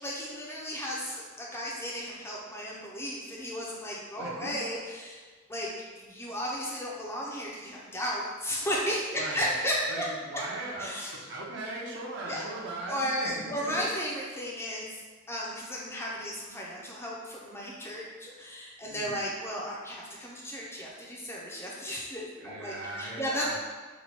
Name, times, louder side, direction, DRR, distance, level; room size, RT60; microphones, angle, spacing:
voice 1, 0.0-1.2 1.5-5.2 5.5-5.7 6.0-10.0 10.8-11.2 12.3-12.5 12.9-14.9 15.3-23.5, equal, 10° left, -4 dB, 0.4 m, -34 dB
voice 2, 4.2-4.5 9.1-9.5 9.9-13.9 18.9-19.2 22.4-23.5, right 2 dB, 55° right, -3 dB, 0.7 m, -39 dB
2.9 x 2.2 x 4.1 m, 1.4 s
head